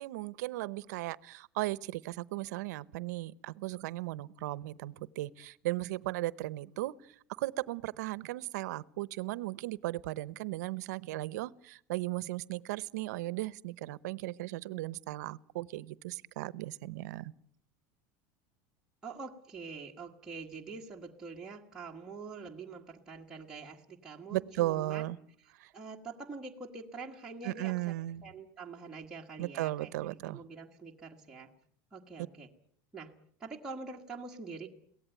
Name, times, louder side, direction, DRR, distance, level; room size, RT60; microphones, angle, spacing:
voice 1, 0.0-17.3 24.3-25.2 25.6-25.7 27.4-28.2 29.4-30.4, right 17 dB, 80° right, 20 dB, 0.9 m, -36 dB
voice 2, 19.0-25.0 25.7-27.9 28.2-29.9 30.2-31.5 31.9-32.5 32.9-33.1 33.4-34.7, right 4 dB, 5° right, -3 dB, 1.5 m, -45 dB
23.0 x 17.5 x 9.1 m, 0.64 s
supercardioid pair, 180°, 9 cm